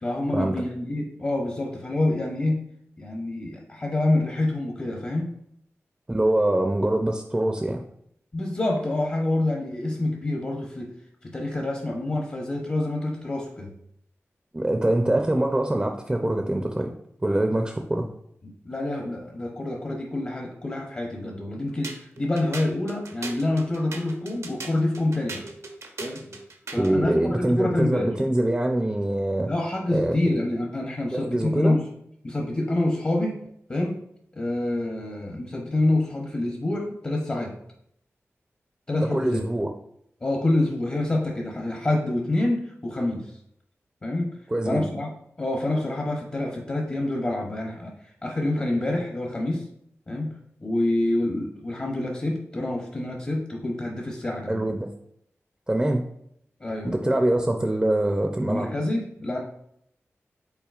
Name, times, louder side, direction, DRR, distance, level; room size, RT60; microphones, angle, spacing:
voice 1, 0.0-2.6 3.0-5.3 8.3-10.9 11.2-13.7 18.4-25.4 26.0-26.4 26.7-28.1 29.5-31.8 32.2-33.4 33.7-34.0 34.3-37.6 38.9-39.4 40.2-43.3 44.0-44.3 44.6-45.1 45.4-47.9 48.2-49.6 50.1-50.3 50.6-54.6 56.6-57.0 58.5-59.4, left 2 dB, 40° left, 0 dB, 0.8 m, -27 dB
voice 2, 6.1-7.8 14.5-16.9 17.2-18.1 26.7-29.5 29.9-30.2 31.1-31.8 39.0-39.7 44.5-44.9 54.5-54.9 55.7-56.0 56.8-58.7, right 1 dB, 15° right, 4 dB, 0.4 m, -24 dB
sound 1, 21.8-27.0, right 3 dB, 80° right, 0.6 m, -39 dB
5.7 x 3.8 x 2.4 m, 0.72 s
wide cardioid pair, 85°, 5 cm